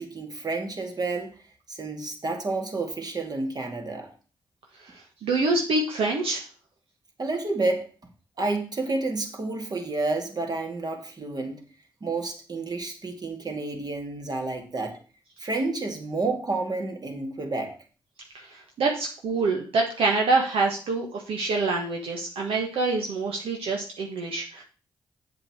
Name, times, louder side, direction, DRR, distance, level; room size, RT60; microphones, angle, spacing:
voice 1, 0.0-1.3 1.7-4.1 7.2-7.9 8.4-11.6 12.0-15.0 15.4-17.7, right 3 dB, 45° right, 3 dB, 2.6 m, -30 dB
voice 2, 4.8-6.4 18.3-24.6, right 3 dB, 75° right, 1 dB, 1.5 m, -26 dB
7.9 x 7.7 x 4.6 m, 0.37 s
supercardioid pair, 45°, 9 cm